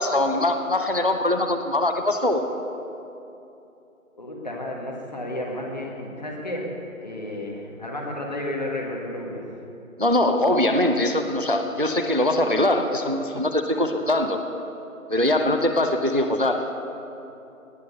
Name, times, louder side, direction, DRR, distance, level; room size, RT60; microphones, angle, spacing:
voice 1, 0.0-2.5 10.0-14.4 15.1-16.7, left 1 dB, 40° right, 7 dB, 0.5 m, -22 dB
voice 2, 4.2-6.7 7.0-9.5, left 1 dB, 30° left, -1 dB, 1.6 m, -32 dB
18.5 x 9.4 x 5.4 m, 2.9 s
figure-of-eight pair, 170°, 42 cm